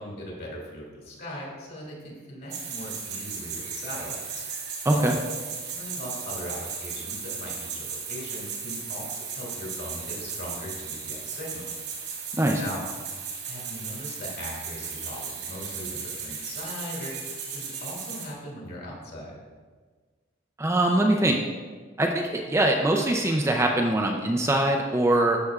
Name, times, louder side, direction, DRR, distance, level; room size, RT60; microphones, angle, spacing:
voice 1, 0.0-4.4 4.9-5.2 5.6-11.7 12.5-12.8 13.4-17.1 17.5-19.4, left 1 dB, 50° left, -3 dB, 2.3 m, -39 dB
sound 1, 2.5-18.3, right 6 dB, 70° right, 2.0 m, -36 dB
voice 2, 4.9-5.2 12.4-12.6 20.6-21.4 22.0-25.4, right 1 dB, 15° right, 1 dB, 0.4 m, -22 dB
13.0 x 5.8 x 2.4 m, 1.4 s
head